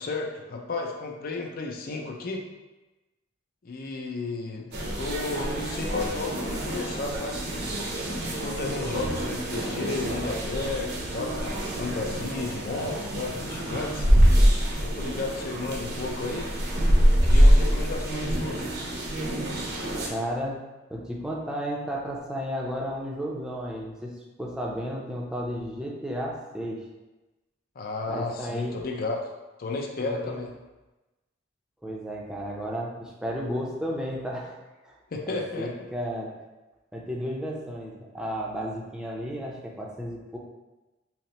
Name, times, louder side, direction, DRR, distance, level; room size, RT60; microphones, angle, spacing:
voice 1, 0.0-2.4 3.6-4.7 5.0-7.4 8.2-14.1 14.8-16.5 17.1-18.7 27.8-29.3 29.6-30.5 35.1-35.7, left 3 dB, 50° left, 0 dB, 0.5 m, -33 dB
sound 1, 4.7-20.1, equal, 60° right, 0.7 m, -25 dB
voice 2, 20.1-20.6 20.9-24.1 24.4-26.8 28.1-28.8 30.0-30.4 31.8-34.6 34.8-35.0 35.3-36.3 36.9-40.4, equal, 5° right, -3 dB, 0.5 m, -33 dB
5.6 x 2.1 x 3.0 m, 1.1 s
head